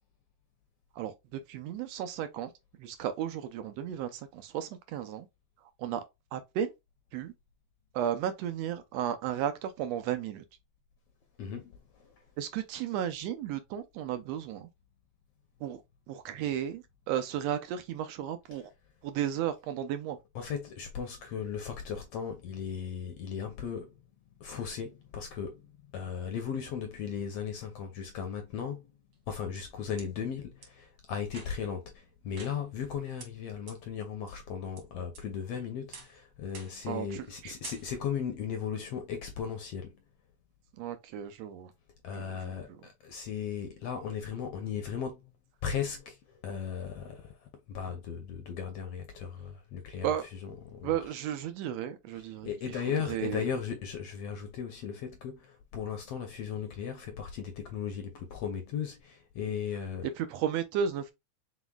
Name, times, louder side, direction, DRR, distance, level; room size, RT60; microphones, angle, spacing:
voice 1, 1.0-2.5 2.8-5.3 5.8-6.0 6.3-6.7 7.1-7.3 7.9-10.4 12.4-14.7 15.6-15.8 16.1-18.7 19.0-20.2 36.9-37.5 40.8-41.7 50.0-50.2 50.8-52.5 53.1-53.4 60.2-61.1, right 9 dB, 80° right, 1.5 m, -34 dB
voice 2, 11.4-12.1 18.5-18.7 20.3-23.9 24.4-28.9 29.3-40.0 42.0-45.3 45.6-51.2 52.1-60.1, left 7 dB, 75° left, 1.5 m, -37 dB
sound 1, 29.1-30.1 30.6-30.7 31.3-31.8 32.4-32.9 33.2-33.3 33.7-33.8 34.3-34.8 35.1-35.5 35.9-36.2 36.5-36.9 37.2-37.4 37.6-38.2, right 5 dB, 55° right, 2.1 m, -49 dB
4.8 x 4.0 x 2.2 m
omnidirectional pair, 3.4 m